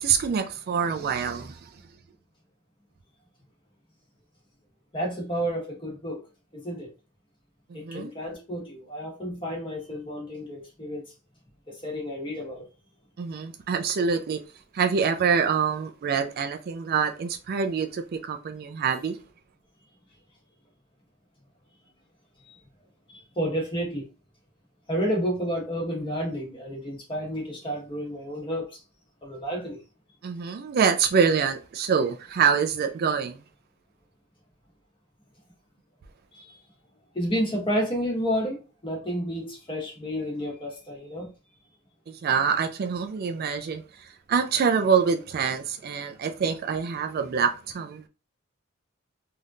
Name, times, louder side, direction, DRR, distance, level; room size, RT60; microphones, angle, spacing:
voice 1, 0.0-1.7 7.7-8.1 13.2-14.4 14.7-19.2 30.2-33.4 42.1-48.0, right 6 dB, 50° right, 0.3 m, -25 dB
voice 2, 4.9-6.2 6.5-6.9 7.7-11.0 11.7-12.7 23.1-24.0 24.9-28.8 29.2-29.8 36.3-36.6 37.1-41.3, equal, 25° left, 1.2 m, -30 dB
3.4 x 2.7 x 2.4 m
head